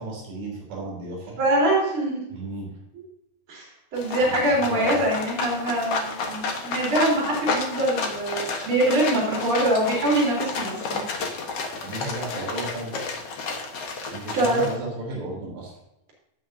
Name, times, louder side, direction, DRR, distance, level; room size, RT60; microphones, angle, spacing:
voice 1, 0.0-1.4 2.3-2.7 4.2-5.0 11.8-13.0 14.1-15.7, right 2 dB, 75° right, -3 dB, 5.3 m, -33 dB
voice 2, 1.4-2.2 3.5-11.0 14.3-14.6, right 1 dB, 30° right, -3 dB, 4.3 m, -24 dB
sound 1, 4.0-14.8, left 4 dB, 70° left, 1.4 m, -31 dB
17.0 x 6.3 x 2.7 m, 0.87 s
omnidirectional pair, 4.9 m